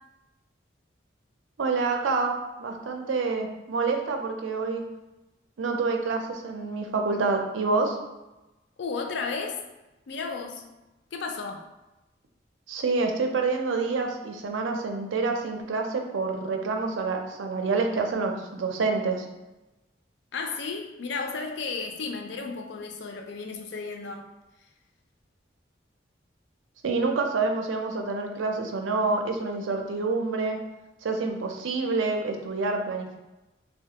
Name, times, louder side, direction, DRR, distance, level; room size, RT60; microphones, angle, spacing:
voice 1, 1.6-4.8 5.6-8.0 12.7-19.3 26.8-30.6 31.0-33.2, right 3 dB, 85° right, 3 dB, 0.5 m, -27 dB
voice 2, 8.8-9.6 10.1-10.6 11.1-11.6 20.3-24.3, left 4 dB, 70° left, 4 dB, 0.4 m, -33 dB
3.1 x 2.2 x 2.8 m, 1.0 s
head